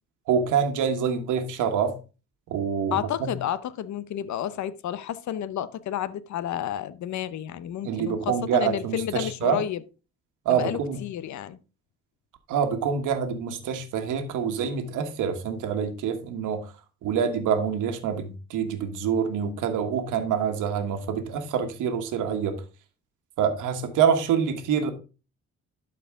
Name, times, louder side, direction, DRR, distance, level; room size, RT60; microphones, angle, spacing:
voice 1, 0.3-2.0 2.5-3.3 7.8-9.6 10.4-11.0 12.5-16.7 17.0-22.6 23.4-24.9, right 7 dB, 85° right, 1.5 m, -26 dB
voice 2, 2.9-9.8 10.5-11.6, left 11 dB, 70° left, 0.8 m, -31 dB
12.0 x 4.7 x 3.7 m
cardioid pair, 90°, 30 cm